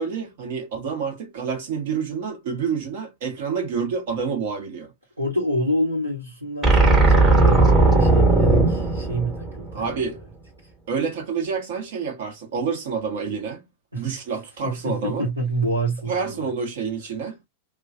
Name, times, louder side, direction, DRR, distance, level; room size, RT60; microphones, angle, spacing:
voice 1, 0.0-4.9 9.7-10.2 10.9-13.6 13.9-15.3 16.1-17.4, right 6 dB, 55° right, 1.4 m, -28 dB
voice 2, 5.2-10.0 13.9-14.1 14.6-16.5, right 1 dB, 85° right, 1.3 m, -26 dB
sound 1, 6.6-10.0, right 3 dB, 25° right, 1.4 m, -17 dB
2.9 x 2.4 x 2.4 m
figure-of-eight pair, 90°, 0 cm